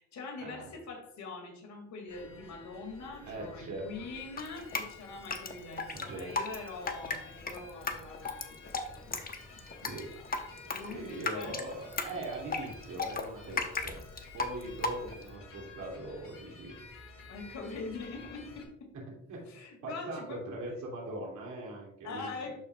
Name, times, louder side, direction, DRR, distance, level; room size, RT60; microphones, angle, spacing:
voice 1, 0.0-9.2 9.7-9.9 10.7-11.6 14.6-14.8 17.3-18.9 19.5-20.4 22.0-22.6, left 3 dB, 65° left, 1 dB, 2.3 m, -43 dB
sound 1, 2.1-18.6, left 3 dB, 45° left, 2.1 m, -52 dB
voice 2, 3.3-4.1 5.9-6.4 9.8-10.1 10.6-13.9 14.3-16.8 19.3-22.4, right 1 dB, 75° right, -2 dB, 2.7 m, -41 dB
Drip, 4.4-15.4, left 3 dB, 30° left, 0.9 m, -36 dB
12.0 x 4.3 x 2.4 m, 0.82 s
cardioid pair, 90°, 30 cm